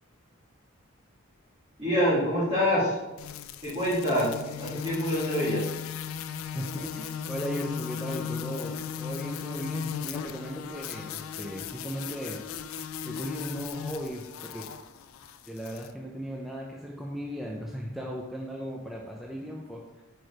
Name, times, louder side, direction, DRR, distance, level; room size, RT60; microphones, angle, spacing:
voice 1, 1.8-3.0 3.6-5.6, equal, 25° right, -10 dB, 1.9 m, -26 dB
sound 1, 3.2-15.9, left 7 dB, 75° left, 0.3 m, -37 dB
voice 2, 6.5-12.4 13.0-14.2 14.5-14.7 15.5-19.8, equal, ahead, -2 dB, 0.5 m, -37 dB
4.6 x 4.6 x 4.7 m, 1.0 s
head